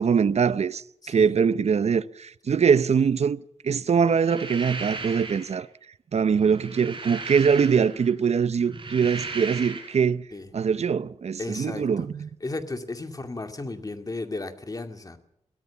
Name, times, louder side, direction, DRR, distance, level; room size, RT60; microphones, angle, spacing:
voice 1, 0.0-5.7 6.1-10.2 10.5-12.3, right 6 dB, 65° right, 0.7 m, -23 dB
voice 2, 1.0-1.4 10.3-10.5 11.4-12.1 12.4-15.2, left 2 dB, 30° left, 2.2 m, -34 dB
sound 1, 4.1-5.6 6.4-8.1 8.6-10.0, right 3 dB, 45° right, 5.9 m, -37 dB
22.5 x 16.5 x 7.0 m
wide cardioid pair, 100°, 12 cm